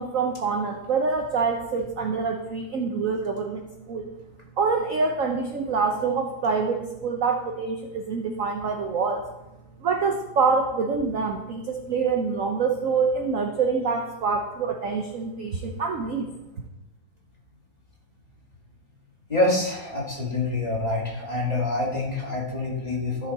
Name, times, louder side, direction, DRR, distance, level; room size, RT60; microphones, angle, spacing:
voice 1, 0.0-4.1 4.6-9.2 9.8-16.3, right 5 dB, 55° right, 4 dB, 0.9 m, -26 dB
voice 2, 19.3-23.3, left 2 dB, 20° left, -3 dB, 2.1 m, -26 dB
14.5 x 6.1 x 4.2 m, 0.96 s
omnidirectional pair, 2.3 m